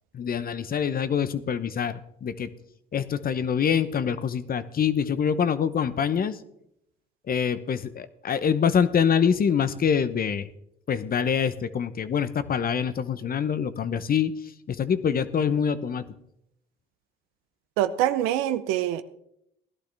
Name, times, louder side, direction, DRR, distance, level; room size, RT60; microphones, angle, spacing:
voice 1, 0.1-2.5 2.9-6.4 7.3-10.5 10.9-14.4 14.7-16.1, left 7 dB, 45° left, 14 dB, 0.9 m, -25 dB
voice 2, 17.8-19.0, right 12 dB, 90° right, 13 dB, 0.7 m, -24 dB
16.5 x 11.5 x 3.4 m, 0.76 s
supercardioid pair, 70°, 21 cm